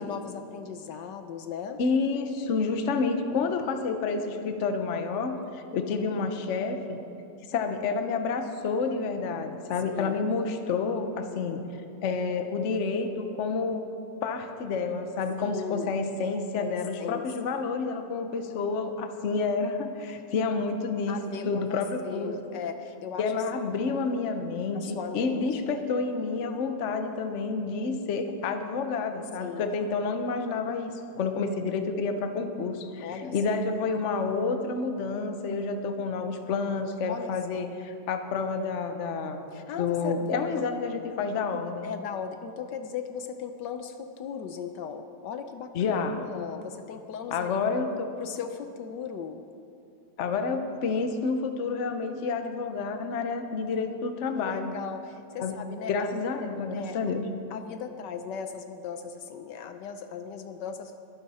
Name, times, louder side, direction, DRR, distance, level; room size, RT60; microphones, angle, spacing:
voice 1, 0.0-1.8 9.9-10.2 15.4-16.0 16.6-17.2 21.1-23.3 24.7-25.8 29.4-29.9 33.0-33.6 37.1-37.7 39.5-40.6 41.5-47.6 48.2-49.4 54.4-56.1 56.7-57.0 57.5-61.0, left 7 dB, 75° left, 8 dB, 1.2 m, -38 dB
voice 2, 1.8-7.0 7.5-13.8 14.2-21.2 21.4-22.3 23.2-39.4 39.8-41.9 45.7-46.2 47.3-48.1 50.2-54.7 55.4-55.6 55.9-57.2, left 4 dB, 50° left, 7 dB, 1.0 m, -29 dB
22.5 x 9.5 x 4.2 m, 2.7 s
omnidirectional pair, 2.0 m